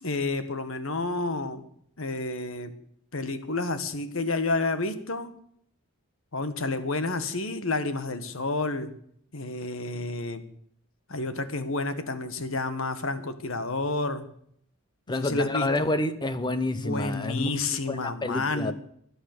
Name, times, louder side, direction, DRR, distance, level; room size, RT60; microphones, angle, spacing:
voice 1, 0.0-1.7 2.0-2.7 3.1-5.3 6.3-8.9 9.3-10.4 11.1-14.3 15.1-15.9 16.8-18.7, left 3 dB, 65° left, 11 dB, 1.6 m, -30 dB
voice 2, 15.1-17.5 17.9-18.7, left 2 dB, 20° left, 12 dB, 0.8 m, -28 dB
24.0 x 8.9 x 6.8 m, 0.68 s
head